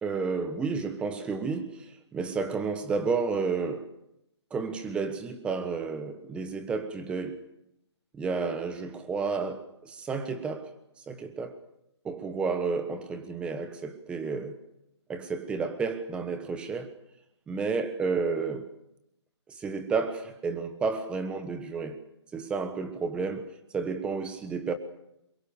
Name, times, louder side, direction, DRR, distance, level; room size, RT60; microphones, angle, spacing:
voice 1, 0.0-3.9 4.5-7.4 8.1-10.7 11.1-11.6 12.0-14.6 15.1-16.9 17.5-18.7 19.5-22.0 22.3-24.7, right 4 dB, 5° right, 1.2 m, -31 dB
23.0 x 22.5 x 6.9 m
hypercardioid pair, 160°, 15 cm